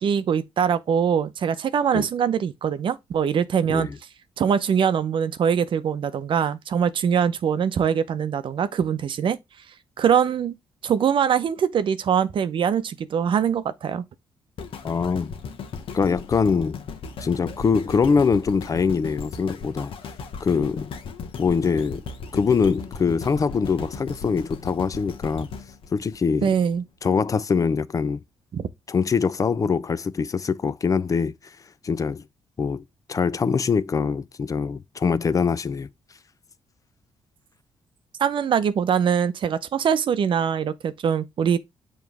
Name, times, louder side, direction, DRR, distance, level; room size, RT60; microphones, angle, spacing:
voice 1, 0.0-3.9 4.4-9.4 10.0-10.6 10.8-14.0 26.4-26.8 28.5-28.7 38.2-41.6, right 7 dB, 60° right, 0.7 m, -23 dB
sound 1, 14.6-26.8 27.3-27.4, left 5 dB, 65° left, 1.0 m, -37 dB
voice 2, 14.8-15.3 15.9-16.8 17.2-19.9 20.4-20.9 21.4-22.0 22.3-25.5 25.9-26.5 27.0-28.2 28.9-31.3 31.8-32.2 32.6-32.8 33.1-35.9, left 5 dB, 35° left, 0.4 m, -23 dB
7.0 x 3.1 x 4.7 m
cardioid pair, 80°, 10 cm